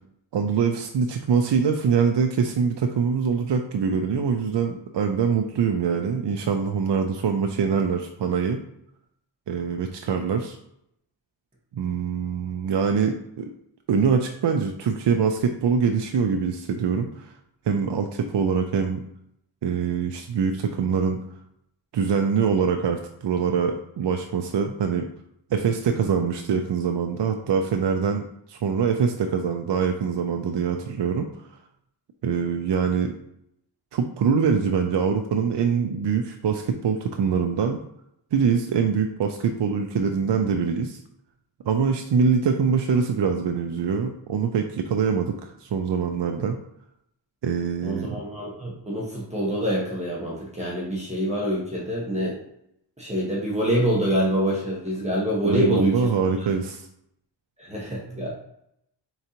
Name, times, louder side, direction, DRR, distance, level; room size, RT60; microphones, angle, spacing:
voice 1, 0.3-8.6 9.5-10.6 11.7-13.5 13.9-17.3 17.7-19.0 19.6-21.2 21.9-25.1 25.5-31.3 32.2-33.1 33.9-37.8 38.3-41.0 41.7-46.6 47.4-48.2 55.4-56.9, right 6 dB, 70° right, 5 dB, 0.5 m, -24 dB
voice 2, 47.8-52.4 53.0-56.1 57.6-58.3, equal, 15° right, -5 dB, 1.3 m, -26 dB
4.5 x 3.9 x 2.9 m, 0.75 s
wide cardioid pair, 80°, 44 cm